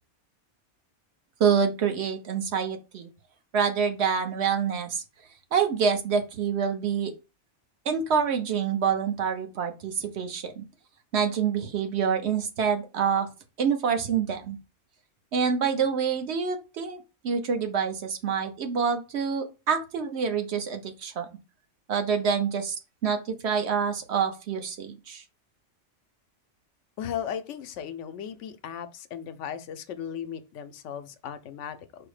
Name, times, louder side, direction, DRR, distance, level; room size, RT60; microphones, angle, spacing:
voice 1, 1.4-3.1 3.5-5.0 5.5-7.1 7.9-10.6 11.1-13.3 13.6-14.6 15.3-21.3 21.9-22.8 23.0-25.2, right 6 dB, 70° right, 1.0 m, -26 dB
voice 2, 27.0-32.1, left 9 dB, 90° left, 0.9 m, -36 dB
4.9 x 2.0 x 4.8 m
omnidirectional pair, 1.2 m